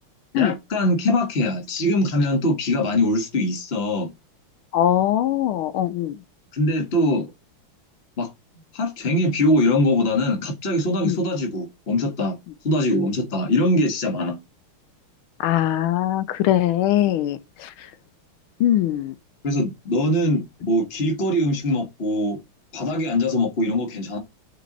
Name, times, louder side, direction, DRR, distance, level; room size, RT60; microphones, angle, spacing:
voice 1, 0.3-4.1 6.5-7.3 8.2-8.3 8.7-12.4 12.6-14.4 19.4-22.4 22.7-24.2, left 1 dB, 30° left, 1.7 m, -22 dB
voice 2, 4.7-6.1 11.0-11.2 15.4-17.7 18.6-19.1, left 12 dB, 75° left, 1.5 m, -21 dB
6.5 x 4.6 x 4.1 m
omnidirectional pair, 2.4 m